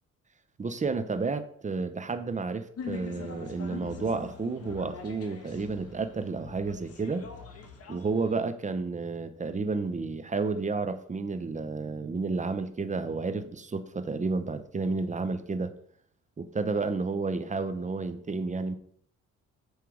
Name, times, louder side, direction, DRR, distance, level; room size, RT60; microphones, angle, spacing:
voice 1, 0.6-7.3 7.9-15.7 16.4-18.7, right 4 dB, 25° right, 0.7 m, -31 dB
sound 1, 2.8-8.4, left 6 dB, 50° left, 1.5 m, -43 dB
9.4 x 3.4 x 4.8 m
cardioid pair, 90°, 30 cm